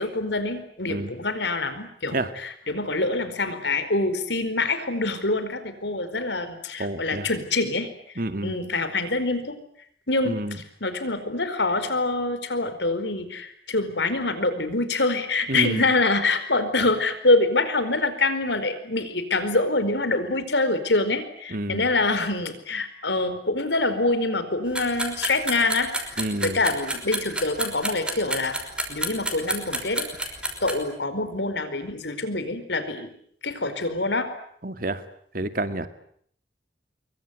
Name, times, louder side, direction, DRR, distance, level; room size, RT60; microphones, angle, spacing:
voice 1, 0.0-9.6 10.1-28.6 28.9-33.2 33.4-34.3, left 2 dB, 85° left, 11 dB, 4.7 m, -25 dB
voice 2, 6.8-7.3 8.2-8.5 10.3-10.6 15.5-15.8 21.5-21.9 26.2-26.6 34.6-35.0 35.3-35.9, right 1 dB, 55° right, 10 dB, 2.2 m, -28 dB
sound 1, 24.7-30.7, right 1 dB, 5° right, 5.5 m, -28 dB
25.5 x 23.5 x 9.6 m, 0.66 s
head